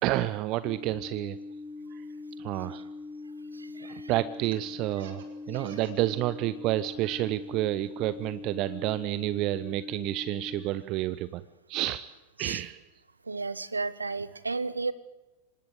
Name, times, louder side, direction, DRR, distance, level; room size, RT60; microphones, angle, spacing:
voice 1, 0.0-1.4 1.9-2.0 2.4-2.8 3.8-11.4 11.7-12.0 12.4-12.8, right 15 dB, 40° right, 16 dB, 0.7 m, -30 dB
sound 1, 0.6-10.6, left 3 dB, 15° left, 3.9 m, -42 dB
voice 2, 3.5-4.1 5.5-5.8 12.4-12.6 13.3-14.9, right 3 dB, 80° right, 18 dB, 0.8 m, -33 dB
Laughter, 4.3-6.1 6.4-7.1 7.4-9.2, right 9 dB, 55° right, 3.7 m, -49 dB
25.5 x 19.5 x 7.9 m, 1.1 s
figure-of-eight pair, 85°, 0 cm